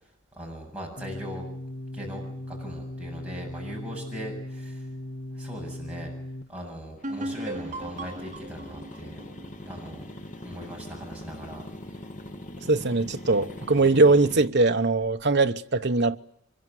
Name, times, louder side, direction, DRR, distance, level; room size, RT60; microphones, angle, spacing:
voice 1, 0.3-1.5 1.9-4.9 5.3-6.1 6.5-9.3 9.6-10.1 10.4-12.0, equal, 5° right, 7.9 m, -40 dB
sound 1, 1.0-6.4, left 1 dB, 50° left, 1.4 m, -38 dB
sound 2, 7.0-14.5, left 1 dB, 35° left, 1.4 m, -42 dB
sound 3, 7.0-10.6, right 1 dB, 35° right, 2.7 m, -37 dB
voice 2, 12.7-16.2, right 3 dB, 50° right, 1.0 m, -21 dB
24.0 x 22.0 x 9.3 m
head